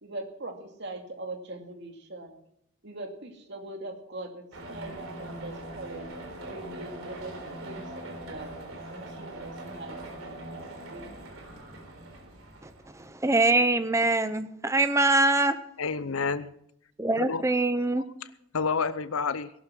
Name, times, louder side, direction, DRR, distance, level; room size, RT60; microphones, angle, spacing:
voice 1, 0.0-2.4 2.8-6.1 6.4-8.5 8.9-10.5 10.9-11.3, right 2 dB, 55° right, 2.5 m, -41 dB
sound 1, 4.5-13.1, right 1 dB, 90° right, 3.6 m, -41 dB
voice 2, 12.6-15.6 17.0-18.1, right 2 dB, 15° right, 0.8 m, -24 dB
voice 3, 15.8-16.5 17.2-17.4 18.0-18.1 18.5-19.5, left 5 dB, 85° left, 0.7 m, -29 dB
18.0 x 11.5 x 6.2 m
head